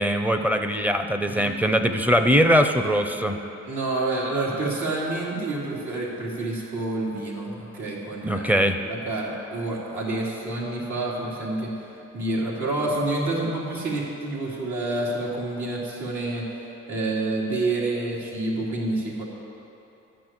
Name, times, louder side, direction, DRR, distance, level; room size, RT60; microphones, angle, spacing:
voice 1, 0.0-3.4 8.2-8.8, equal, 5° right, 7 dB, 0.7 m, -21 dB
voice 2, 3.6-8.5 8.9-11.7 12.1-16.5 16.9-19.2, right 2 dB, 70° right, -5 dB, 3.2 m, -28 dB
12.0 x 6.2 x 9.0 m, 2.9 s
cardioid pair, 90°, 30 cm